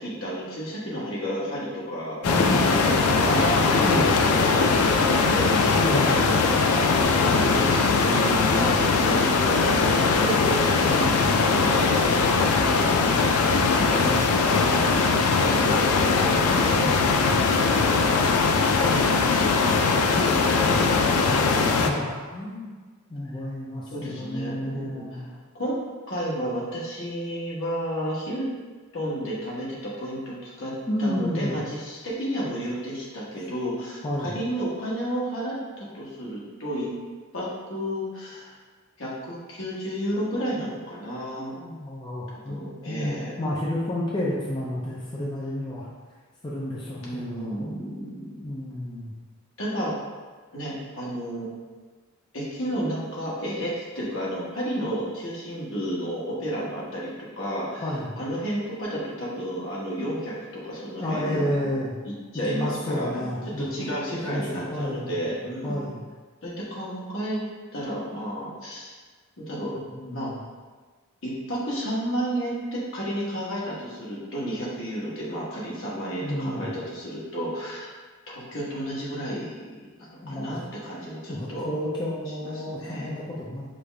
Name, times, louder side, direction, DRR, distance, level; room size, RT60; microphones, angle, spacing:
voice 1, 0.0-2.2 2.5-10.8 11.2-13.0 13.5-14.1 14.4-19.4 23.9-25.3 25.5-25.8 26.1-28.5 28.9-36.9 37.3-38.6 39.0-41.5 42.5-43.3 47.0-48.5 49.6-49.9 50.5-51.5 52.3-61.7 62.0-63.3 63.6-65.8 66.4-67.4 67.7-68.9 69.4-69.7 70.1-70.3 71.2-77.9 78.3-79.6 80.0-81.7 82.4-83.2, equal, 65° left, -6 dB, 1.1 m, -32 dB
sound 1, 2.2-21.9, left 4 dB, 90° left, 0.4 m, -21 dB
voice 2, 2.3-2.8 3.1-3.2 3.8-4.1 5.8-6.3 10.8-11.4 13.9-14.4 16.7-17.4 18.9-19.4 19.7-22.7 23.1-25.3 30.9-31.6 34.0-34.3 41.4-45.9 46.4-47.7 48.4-49.1 57.8-58.1 61.0-62.0 62.4-63.9 64.3-65.1 65.6-66.0 69.9-70.4 76.2-76.8 80.2-80.5 81.3-83.6, left 1 dB, 20° left, -6 dB, 0.4 m, -31 dB
5.1 x 2.4 x 3.3 m, 1.4 s
head